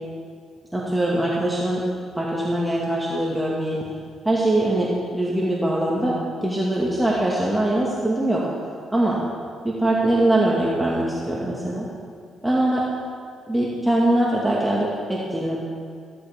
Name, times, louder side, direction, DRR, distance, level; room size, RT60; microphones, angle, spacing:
voice 1, 0.7-1.8 2.2-3.8 4.2-8.4 8.9-9.2 9.6-11.9 12.4-12.8 13.5-15.6, right 1 dB, 10° right, -5 dB, 2.0 m, -22 dB
15.5 x 13.0 x 3.6 m, 2.1 s
cardioid pair, 90°, 0 cm